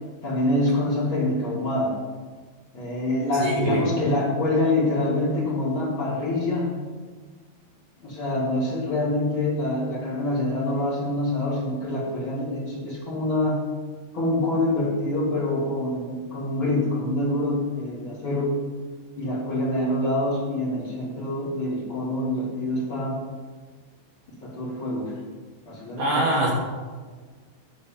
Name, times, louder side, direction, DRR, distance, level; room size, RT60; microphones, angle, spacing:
voice 1, 0.2-2.0 2.7-6.7 8.0-13.6 14.1-18.5 19.2-23.2 24.4-25.1 25.6-26.3, left 1 dB, 45° left, -6 dB, 1.6 m, -25 dB
voice 2, 3.4-3.9 26.0-26.5, right 1 dB, 65° right, -4 dB, 2.3 m, -24 dB
12.5 x 4.3 x 7.2 m, 1.5 s
omnidirectional pair, 5.5 m